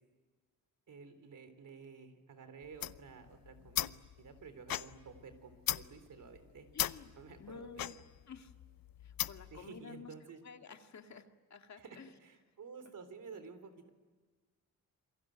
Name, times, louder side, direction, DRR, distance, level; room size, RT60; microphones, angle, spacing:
voice 1, 0.9-6.7 7.1-8.0 9.5-10.4 11.8-13.9, right 5 dB, 65° right, 10 dB, 3.6 m, -52 dB
sound 1, 2.6-9.6, left 12 dB, 85° left, 0.8 m, -39 dB
voice 2, 6.7-7.1 7.4-8.0 8.3-8.5 9.0-10.1 10.4-12.1, left 5 dB, 55° left, 5 dB, 2.0 m, -51 dB
27.5 x 22.5 x 9.3 m, 1.4 s
wide cardioid pair, 125°, 34 cm